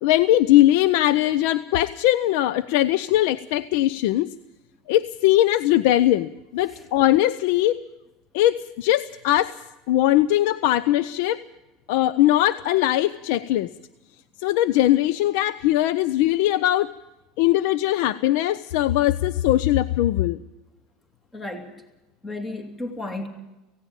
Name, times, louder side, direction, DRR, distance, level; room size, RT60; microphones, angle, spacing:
voice 1, 0.0-4.3 4.9-7.8 8.3-9.6 9.9-11.4 11.9-13.7 14.4-16.9 17.4-20.4, left 14 dB, 75° left, 16 dB, 0.6 m, -20 dB
voice 2, 21.3-21.7 22.2-23.3, left 2 dB, 20° left, 5 dB, 2.8 m, -33 dB
17.5 x 16.5 x 8.9 m, 1.0 s
supercardioid pair, 105°, 0 cm